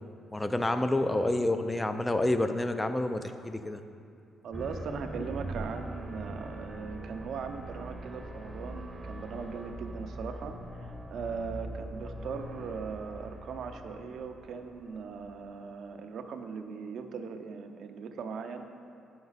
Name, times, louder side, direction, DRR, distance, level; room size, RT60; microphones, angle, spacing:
voice 1, 0.3-3.8, left 1 dB, 15° left, 9 dB, 0.5 m, -28 dB
voice 2, 4.4-18.7, right 5 dB, 65° right, 6 dB, 0.6 m, -39 dB
sound 1, 4.5-15.7, right 1 dB, 20° right, 0.8 m, -42 dB
9.2 x 6.0 x 4.0 m, 2.5 s
cardioid pair, 90°, 0 cm